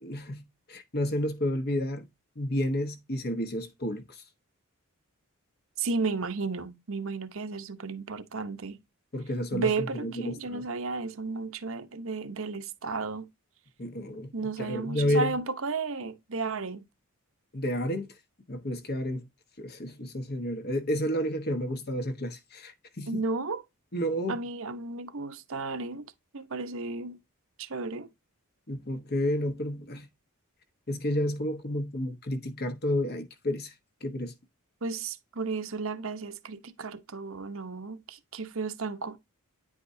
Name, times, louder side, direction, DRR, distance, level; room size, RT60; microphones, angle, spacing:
voice 1, 0.0-2.1 2.4-4.2 9.1-10.6 13.8-15.4 17.5-18.1 18.5-19.2 19.6-23.2 23.9-24.4 28.7-30.1 30.9-33.7 34.0-34.3, equal, 45° left, 1.2 m, -31 dB
voice 2, 5.8-8.8 9.5-13.3 14.3-16.8 23.1-23.6 24.3-26.0 26.3-27.2 27.6-28.1 34.8-39.2, right 4 dB, 60° right, 0.9 m, -33 dB
9.7 x 4.9 x 2.7 m
head